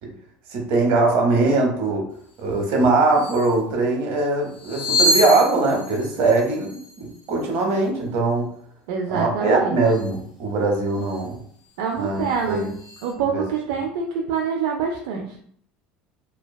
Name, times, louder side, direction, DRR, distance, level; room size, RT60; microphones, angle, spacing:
voice 1, 0.5-2.1 2.4-8.5 9.1-11.4 12.0-12.7 13.3-13.4, right 3 dB, 65° right, 1 dB, 0.8 m, -21 dB
sound 1, 2.7-2.8 3.1-3.6 4.5-7.6 9.8-10.2 11.0-11.3 11.6-13.1, left 1 dB, 40° left, 1.1 m, -27 dB
voice 2, 8.9-9.8 11.8-12.7 13.0-15.4, right 6 dB, 80° right, 0 dB, 0.3 m, -26 dB
2.7 x 2.1 x 2.2 m, 0.62 s
supercardioid pair, 115°, 4 cm